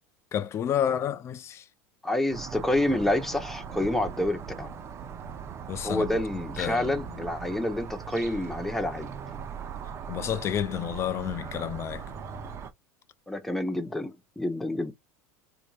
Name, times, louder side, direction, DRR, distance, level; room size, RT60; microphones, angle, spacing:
voice 1, 0.3-1.6 5.7-6.1 6.6-6.9 10.1-12.0, left 9 dB, 35° left, 0.5 m, -30 dB
voice 2, 2.0-4.7 5.8-9.1 13.3-14.9, left 1 dB, 5° left, 0.9 m, -28 dB
sound 1, 2.3-12.7, right 7 dB, 35° right, 0.7 m, -39 dB
4.2 x 2.7 x 2.4 m
supercardioid pair, 105°, 8 cm